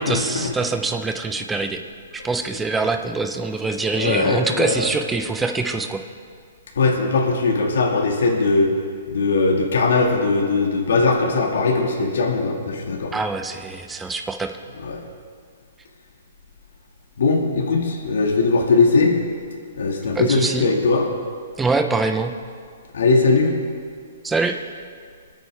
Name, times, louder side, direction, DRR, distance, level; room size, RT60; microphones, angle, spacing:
voice 1, 0.0-1.8 2.1-6.0 13.1-14.6 20.1-20.7 21.6-22.3 24.2-24.6, right 3 dB, 10° right, 5 dB, 0.9 m, -24 dB
voice 2, 3.9-4.9 6.8-8.7 9.1-13.1 14.8-15.0 17.2-19.2 19.7-21.1 22.9-23.5, left 3 dB, 75° left, -1 dB, 2.2 m, -19 dB
25.5 x 9.0 x 3.6 m, 2.1 s
hypercardioid pair, 140°, 0 cm